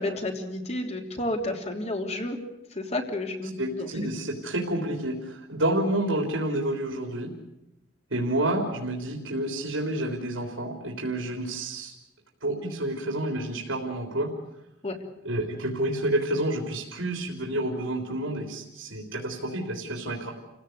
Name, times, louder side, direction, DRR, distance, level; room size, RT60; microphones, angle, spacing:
voice 1, 0.0-2.4 2.7-3.9 14.8-15.0, left 1 dB, 35° left, 4 dB, 3.2 m, -31 dB
voice 2, 3.6-7.3 8.1-11.9 12.4-14.3 15.2-20.3, right 1 dB, 80° right, 1 dB, 3.7 m, -29 dB
29.0 x 16.5 x 8.1 m, 0.93 s
head